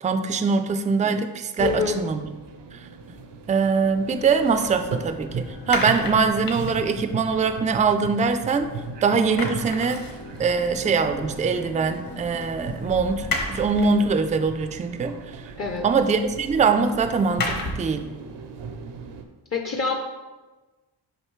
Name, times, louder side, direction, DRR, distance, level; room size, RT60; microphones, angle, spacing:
voice 1, 0.0-2.3 2.7-2.8 3.5-8.7 9.0-10.0 10.4-15.1 15.8-18.1, right 5 dB, 20° right, 9 dB, 0.3 m, -23 dB
voice 2, 1.6-2.0 15.6-15.9 19.5-19.9, left 5 dB, 35° left, 2 dB, 0.6 m, -25 dB
sound 1, 1.6-19.2, right 5 dB, 80° right, 0.7 m, -38 dB
sound 2, 3.7-14.1, left 3 dB, 70° left, 1.1 m, -44 dB
sound 3, 4.2-8.8 9.1-18.0, left 2 dB, 55° left, 1.3 m, -35 dB
6.5 x 5.1 x 3.1 m, 1.2 s
cardioid pair, 100°, 42 cm